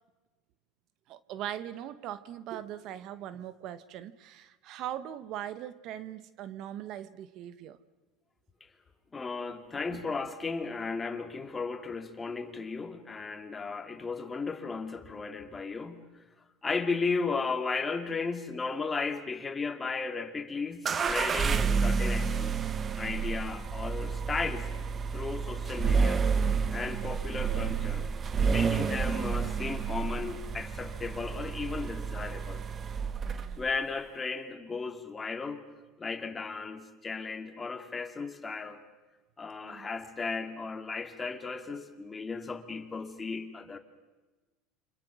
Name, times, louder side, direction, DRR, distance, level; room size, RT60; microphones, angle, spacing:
voice 1, 1.1-7.8 9.9-10.1 33.2-33.6 39.6-39.9, right 11 dB, 55° right, 14 dB, 1.1 m, -40 dB
voice 2, 9.1-16.2 16.6-22.6 23.0-24.7 25.1-26.3 26.7-28.0 28.5-32.6 33.6-35.6 36.0-38.8 39.4-43.8, left 4 dB, 20° left, 6 dB, 2.5 m, -35 dB
sound 1, 20.9-33.7, right 5 dB, 30° right, 1.1 m, -30 dB
29.0 x 26.0 x 6.3 m, 1.2 s
supercardioid pair, 110°, 0 cm